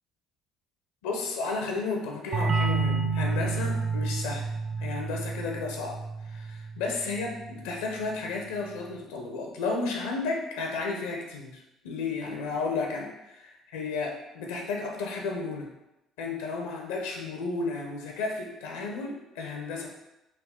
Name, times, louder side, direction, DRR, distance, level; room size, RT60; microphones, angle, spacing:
voice 1, 1.0-4.5 4.8-15.7 16.2-19.9, left 3 dB, 85° left, 1 dB, 0.5 m, -33 dB
sound 1, 2.3-7.8, right 4 dB, 55° right, 0.3 m, -30 dB
3.6 x 2.3 x 3.4 m, 0.92 s
hypercardioid pair, 65°, 0 cm